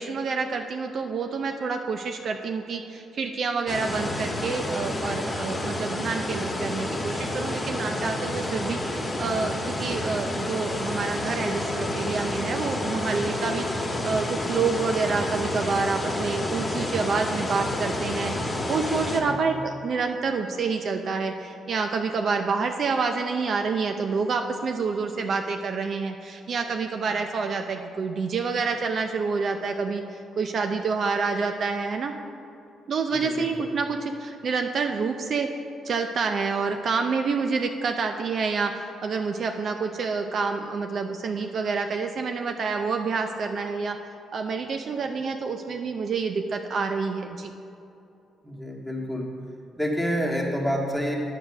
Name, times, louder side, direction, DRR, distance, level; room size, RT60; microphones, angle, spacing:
voice 1, 0.0-32.1 32.9-35.5 35.8-44.0 44.3-47.5, right 4 dB, 55° right, 5 dB, 0.5 m, -28 dB
sound 1, 3.7-19.2, left 1 dB, 20° left, 1.3 m, -29 dB
voice 2, 33.1-33.5 48.4-49.3 49.8-51.2, equal, ahead, -2 dB, 1.7 m, -28 dB
8.7 x 6.6 x 5.9 m, 2.7 s
cardioid pair, 90°, 0 cm